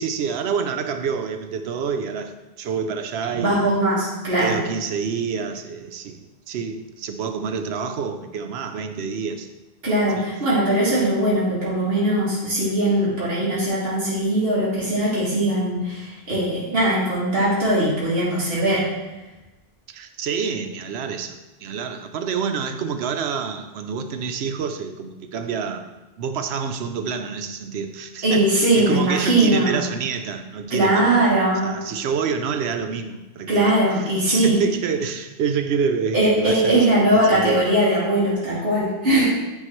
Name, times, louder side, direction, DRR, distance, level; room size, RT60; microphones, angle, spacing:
voice 1, 0.0-3.7 4.3-6.2 6.5-9.5 10.2-10.3 19.9-25.9 26.2-31.3 31.6-33.8 34.3-37.7, right 6 dB, 90° right, 7 dB, 0.8 m, -27 dB
voice 2, 3.3-4.6 9.8-18.9 28.2-29.8 30.7-31.8 33.5-34.6 36.1-39.2, right 1 dB, 65° right, -8 dB, 2.0 m, -20 dB
8.8 x 3.8 x 3.0 m, 1.1 s
omnidirectional pair, 1.1 m